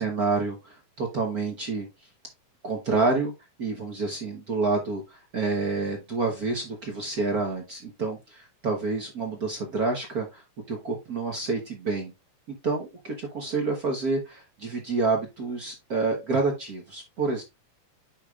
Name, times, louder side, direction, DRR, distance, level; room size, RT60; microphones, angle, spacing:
voice 1, 0.0-2.1 2.6-3.3 3.6-12.1 12.6-17.4, right 3 dB, 75° right, 2 dB, 0.8 m, -28 dB
9.6 x 4.9 x 2.4 m, 0.23 s
omnidirectional pair, 3.4 m